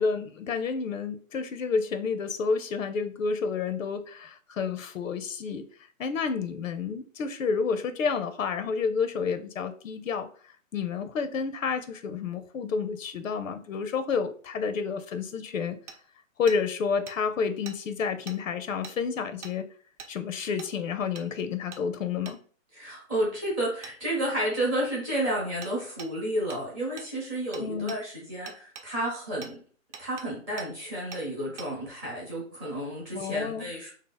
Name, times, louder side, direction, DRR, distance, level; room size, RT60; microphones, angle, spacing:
voice 1, 0.0-5.6 6.0-10.3 10.7-15.8 16.4-19.7 20.1-22.4 27.6-28.0 33.1-33.7, left 5 dB, 70° left, 10 dB, 0.6 m, -30 dB
Hammer, 15.9-16.0 16.5-16.6 17.1-17.2 17.7-17.8 18.3-18.4 18.8-19.0 19.4-19.6 20.0-20.1 20.6-20.7 21.2-21.3 21.7-21.8 22.3-22.4 23.8-24.0 25.6-25.7 26.0-26.1 26.5-26.6 27.0-27.1 27.5-28.0 28.5-28.9 29.4-29.5 29.9-30.3 30.6-30.7 31.1-31.2 31.6-31.7, right 6 dB, 60° right, 0.8 m, -43 dB
voice 2, 22.7-29.6 30.0-33.9, right 1 dB, 10° right, -5 dB, 0.6 m, -31 dB
3.2 x 2.8 x 3.9 m, 0.44 s
hypercardioid pair, 155°, 41 cm